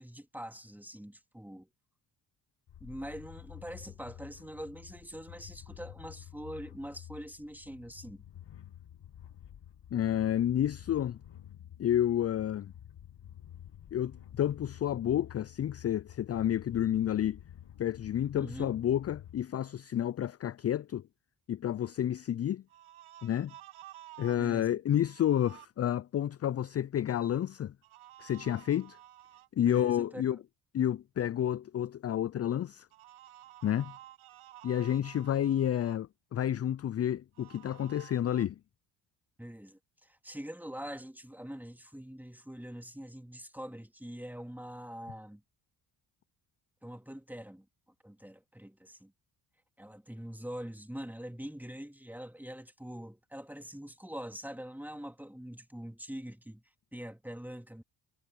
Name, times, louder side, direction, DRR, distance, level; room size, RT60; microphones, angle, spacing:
voice 1, 0.0-1.7 2.8-8.2 18.3-18.7 24.4-24.8 29.6-30.2 39.4-45.4 46.8-47.6 48.0-49.1 49.8-56.6 56.9-57.8, equal, 5° right, 3.2 m, -44 dB
sound 1, 2.7-19.4, left 10 dB, 55° left, 1.9 m, -50 dB
voice 2, 9.9-11.2 11.8-12.7 13.9-17.4 17.8-21.0 21.5-22.6 23.2-23.5 24.2-27.7 28.2-29.0 29.6-30.4 30.7-32.9 33.6-33.9 34.6-38.6, left 10 dB, 35° left, 0.4 m, -30 dB
sound 2, 22.7-24.4 24.9-25.7 27.8-29.5 32.9-36.0 37.3-38.5, right 14 dB, 75° right, 1.4 m, -52 dB
supercardioid pair, 50°, 49 cm